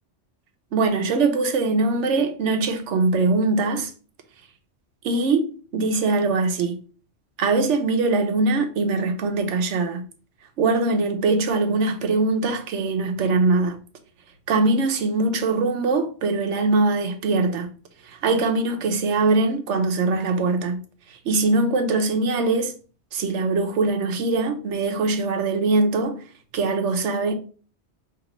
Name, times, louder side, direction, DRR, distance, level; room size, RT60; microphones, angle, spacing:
voice 1, 0.7-3.9 5.0-6.8 7.4-10.0 10.6-13.8 14.5-17.7 18.0-22.7 23.1-26.2 26.5-27.3, right 3 dB, 80° right, 1.0 m, -22 dB
5.2 x 2.9 x 3.0 m
omnidirectional pair, 1.2 m